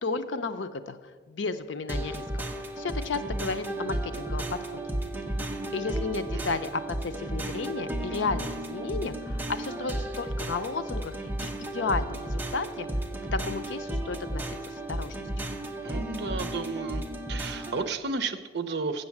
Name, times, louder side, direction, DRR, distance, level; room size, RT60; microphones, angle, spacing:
voice 1, 0.0-1.0 1.3-4.8 5.7-11.1 11.4-12.9 13.3-15.3, left 4 dB, 85° left, 10 dB, 0.6 m, -33 dB
sound 1, 1.9-17.9, right 1 dB, 10° right, 0.7 m, -33 dB
voice 2, 15.7-17.0 17.3-19.0, right 4 dB, 65° right, 10 dB, 0.6 m, -33 dB
7.7 x 7.0 x 7.1 m, 1.4 s
head